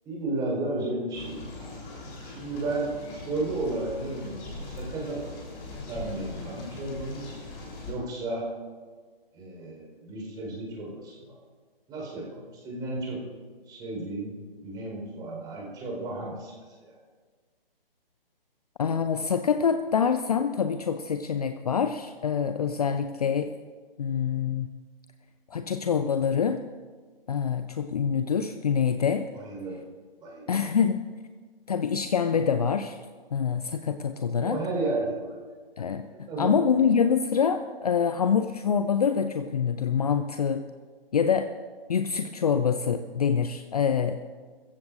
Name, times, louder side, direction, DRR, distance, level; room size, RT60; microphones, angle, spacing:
voice 1, 0.0-1.7 2.2-2.9 3.2-5.2 5.9-7.2 7.8-8.5 9.3-11.3 11.9-13.2 13.7-14.3 14.6-16.5 29.3-29.8 30.2-30.6 34.3-35.4 36.1-36.5, right 2 dB, 15° right, -3 dB, 4.4 m, -33 dB
sound 1, 1.1-7.9, left 2 dB, 25° left, 3.8 m, -40 dB
voice 2, 18.8-23.5 24.0-24.7 25.5-26.6 27.3-29.3 30.5-31.0 31.7-33.0 33.3-34.6 35.8-40.6 41.1-41.5 41.9-44.2, left 7 dB, 40° left, 9 dB, 0.5 m, -25 dB
22.0 x 14.5 x 2.6 m, 1.5 s
figure-of-eight pair, 145°, 30 cm